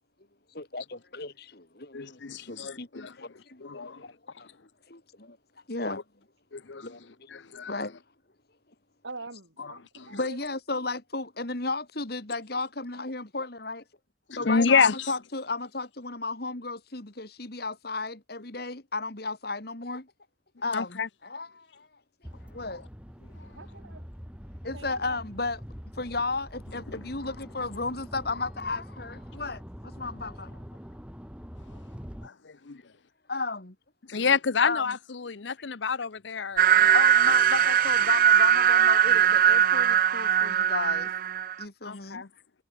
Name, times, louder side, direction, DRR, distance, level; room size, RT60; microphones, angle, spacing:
voice 1, 0.5-4.1 4.4-4.5 4.9-5.4 5.7-6.0 6.8-7.3 7.7-8.0 10.1-13.8 14.4-20.1 20.6-21.9 22.5-22.8 23.4-23.5 24.6-25.6 26.0-30.6 33.3-33.8 34.6-35.0 36.9-41.1 41.6-42.2, left 3 dB, 55° left, 2.4 m, -34 dB
voice 2, 1.9-3.1 3.6-4.0 6.5-6.9 7.3-7.7 9.9-10.1 14.3-15.1 20.7-21.1 22.7-22.8 32.2-32.8 34.1-37.0 41.9-42.3, left 5 dB, 70° left, 0.8 m, -28 dB
voice 3, 9.0-10.5 23.5-24.1 24.7-25.2, right 3 dB, 75° right, 4.0 m, -44 dB
sound 1, 22.2-32.3, equal, 5° right, 4.4 m, -44 dB
sound 2, 36.6-41.6, right 9 dB, 45° right, 0.4 m, -21 dB
head